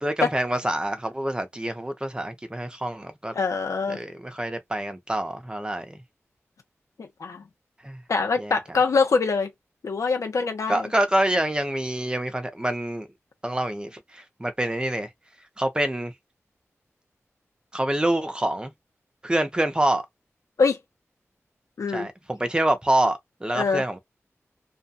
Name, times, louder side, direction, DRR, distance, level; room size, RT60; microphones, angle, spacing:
voice 1, 0.0-3.3 3.9-6.0 7.8-8.0 8.4-8.6 10.7-13.1 13.4-15.1 15.6-16.1 17.7-18.7 19.2-20.0 21.9-24.0, right 1 dB, 15° right, 0.7 m, -26 dB
voice 2, 3.4-4.0 7.0-7.4 8.1-9.5 9.8-10.9 20.6-20.8 21.8-22.1 23.5-23.8, left 4 dB, 90° left, 0.8 m, -24 dB
2.4 x 2.3 x 2.6 m
wide cardioid pair, 55°, 5 cm